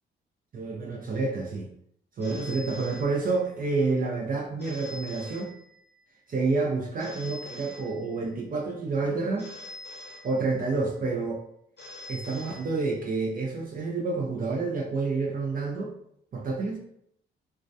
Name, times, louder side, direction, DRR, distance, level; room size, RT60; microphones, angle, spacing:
voice 1, 0.5-1.7 2.2-5.5 6.3-9.5 10.2-11.4 12.1-15.9 16.3-16.8, right 3 dB, 45° right, -1 dB, 0.5 m, -29 dB
Telephone, 2.2-3.7 4.6-6.1 7.0-8.5 9.4-10.9 11.8-13.3, left 1 dB, 55° left, 0.6 m, -45 dB
2.2 x 2.2 x 2.6 m, 0.70 s
cardioid pair, 90°, 21 cm